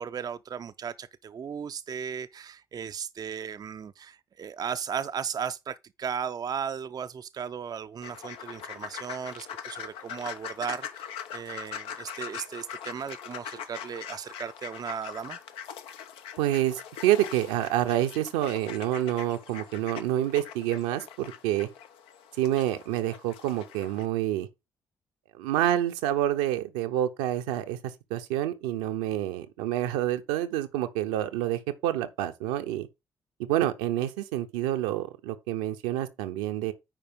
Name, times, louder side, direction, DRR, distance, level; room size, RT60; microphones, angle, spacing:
voice 1, 0.0-15.4, right 7 dB, 40° right, 0.5 m, -36 dB
sound 1, 8.0-24.1, left 8 dB, 70° left, 0.8 m, -42 dB
voice 2, 16.4-21.7 22.4-24.5 25.4-32.9 33.4-36.7, right 13 dB, 75° right, 0.8 m, -28 dB
9.0 x 4.9 x 3.6 m
figure-of-eight pair, 40°, 10 cm